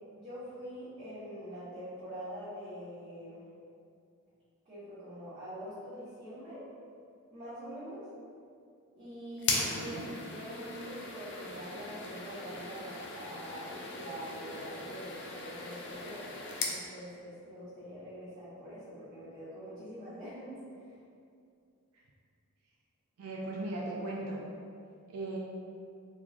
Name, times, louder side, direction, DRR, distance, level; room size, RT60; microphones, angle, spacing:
voice 1, 0.1-3.4 4.7-6.6 7.3-8.1 9.0-10.0 10.3-16.3 16.6-21.0, equal, 30° right, -15 dB, 1.1 m, -44 dB
sound 1, 9.4-16.8, left 3 dB, 55° left, 0.5 m, -38 dB
voice 2, 9.8-10.1 23.2-24.4 25.1-25.4, right 2 dB, 80° right, -3 dB, 0.4 m, -37 dB
3.8 x 3.0 x 2.4 m, 2.4 s
head